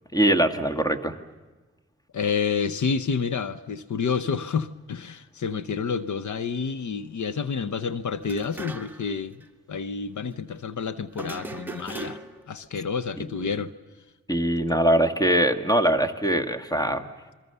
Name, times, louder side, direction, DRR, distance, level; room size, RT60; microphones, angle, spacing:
voice 1, 0.1-1.1 14.3-17.1, right 1 dB, 10° left, 7 dB, 1.8 m, -22 dB
voice 2, 2.1-12.2 12.5-13.7, left 5 dB, 80° left, 13 dB, 0.9 m, -29 dB
sound 1, 8.2-9.2 9.4-9.5 11.1-12.5, right 2 dB, 5° right, 1.8 m, -38 dB
29.0 x 23.0 x 6.8 m, 1.3 s
wide cardioid pair, 85°, 29 cm